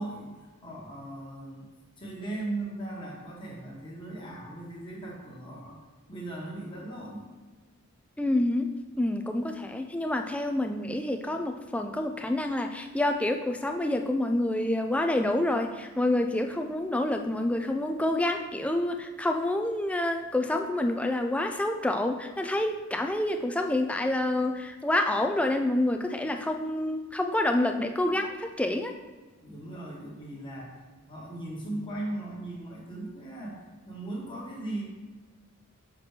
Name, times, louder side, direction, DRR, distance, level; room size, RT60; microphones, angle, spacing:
voice 1, 0.0-1.7 2.0-5.8 6.1-7.3 29.4-30.8 31.1-34.8, right 2 dB, 20° left, -3 dB, 1.2 m, -38 dB
voice 2, 8.2-8.7 9.0-28.9, left 1 dB, 5° left, 5 dB, 0.3 m, -28 dB
5.9 x 5.7 x 3.3 m, 1.3 s
head